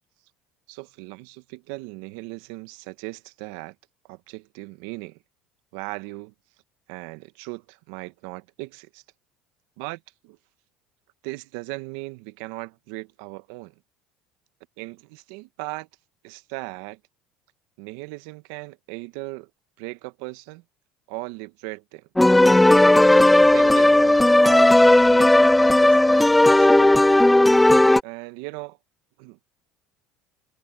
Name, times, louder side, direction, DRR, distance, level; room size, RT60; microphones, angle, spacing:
voice 1, 0.7-3.7 4.1-5.2 5.7-6.3 6.9-9.0 9.8-10.4 11.2-13.7 14.8-15.9 16.2-17.0 17.8-19.5 19.8-20.6 21.1-22.1 23.4-27.1 28.0-28.8 29.2-29.4, right 23 dB, 75° right, 1.3 m, -38 dB
sound 1, 22.2-28.0, left 1 dB, 5° left, 0.4 m, -15 dB
supercardioid pair, 90°, 0 cm